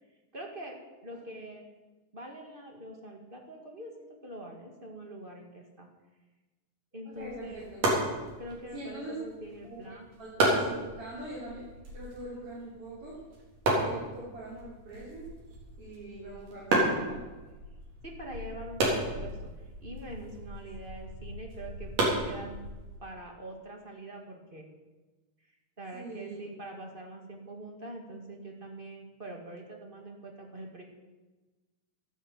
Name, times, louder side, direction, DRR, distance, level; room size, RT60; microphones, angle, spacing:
voice 1, 0.3-1.6 2.1-5.9 6.9-7.7 8.4-10.1 18.0-19.5 19.8-22.7 23.0-24.7 25.8-30.8, right 1 dB, 20° right, 1 dB, 1.8 m, -44 dB
sound 1, 7.1-23.0, right 2 dB, 70° right, 4.9 m, -33 dB
voice 2, 7.2-8.0 8.7-9.2 9.7-11.6 11.9-13.2 13.7-15.3 15.8-17.2 25.9-26.6, right 2 dB, 45° right, -7 dB, 4.3 m, -43 dB
14.0 x 9.9 x 8.2 m, 1.2 s
omnidirectional pair, 3.7 m